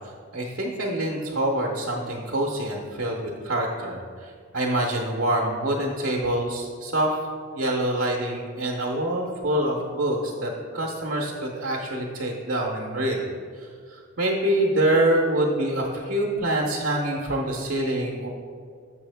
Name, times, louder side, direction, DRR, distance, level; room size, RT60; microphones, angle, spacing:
voice 1, 0.3-7.2 7.5-13.2 13.6-18.3, right 1 dB, 60° right, -2 dB, 0.8 m, -26 dB
6.9 x 6.2 x 3.4 m, 2.1 s
head